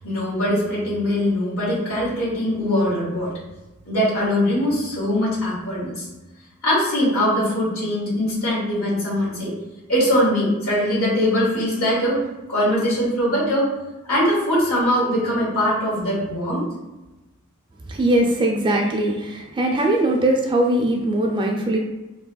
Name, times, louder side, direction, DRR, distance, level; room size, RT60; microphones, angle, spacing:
voice 1, 0.0-3.3 3.8-6.0 6.6-9.5 9.9-13.7 14.0-16.7, equal, 80° left, -7 dB, 1.5 m, -21 dB
voice 2, 17.9-21.8, right 1 dB, 25° right, 1 dB, 0.4 m, -20 dB
3.3 x 2.2 x 2.2 m, 1.1 s
head